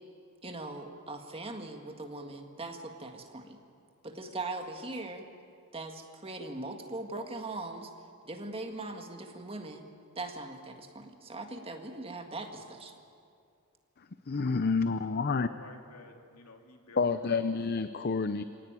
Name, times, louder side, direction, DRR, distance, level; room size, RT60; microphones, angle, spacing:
voice 1, 0.4-3.6 4.0-5.2 5.7-7.9 8.2-9.8 10.2-13.0, right 2 dB, 25° right, 4 dB, 1.9 m, -40 dB
voice 2, 14.3-15.5 17.0-18.4, left 4 dB, 45° left, 11 dB, 0.6 m, -29 dB
voice 3, 15.4-17.5, left 3 dB, 90° left, 3 dB, 2.7 m, -51 dB
26.0 x 18.0 x 9.1 m, 2.4 s
head